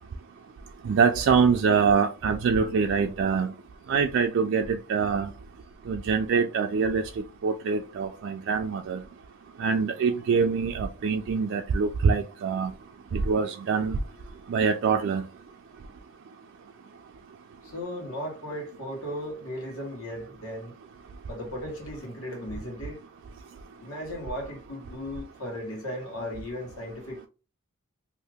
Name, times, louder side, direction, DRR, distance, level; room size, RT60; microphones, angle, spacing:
voice 1, 0.8-3.5 3.9-5.3 5.9-7.0 7.4-9.0 9.6-12.7 13.1-14.0 14.5-15.3, right 5 dB, 60° right, 0.3 m, -24 dB
voice 2, 13.9-14.3 17.6-20.7 21.3-23.0 23.8-27.3, equal, 75° left, 1.4 m, -36 dB
2.8 x 2.4 x 3.5 m
head